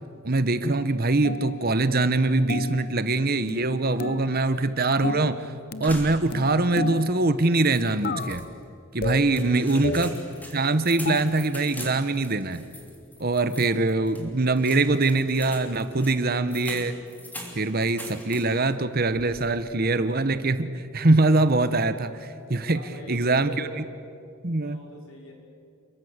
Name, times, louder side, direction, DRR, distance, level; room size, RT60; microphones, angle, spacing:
voice 1, 0.2-5.5 5.8-8.5 8.9-10.1 10.5-12.6 13.2-17.0 17.5-22.8 23.1-23.7 24.4-24.8, right 2 dB, 45° right, 12 dB, 1.2 m, -23 dB
sound 1, 1.2-1.8 2.5-3.1 3.5-4.5 5.0-5.5 5.7-7.4 8.0-8.6 9.0-10.4 11.1-11.2, left 3 dB, 45° left, 0.9 m, -33 dB
sound 2, 5.8-6.7 7.0-7.1 7.6-8.4 9.0-18.7 19.1-19.6, equal, 10° left, 3.3 m, -43 dB
voice 2, 9.3-10.2 22.7-23.9 24.6-25.3, equal, 75° left, 1 dB, 5.5 m, -42 dB
29.0 x 22.5 x 8.2 m, 2.4 s
head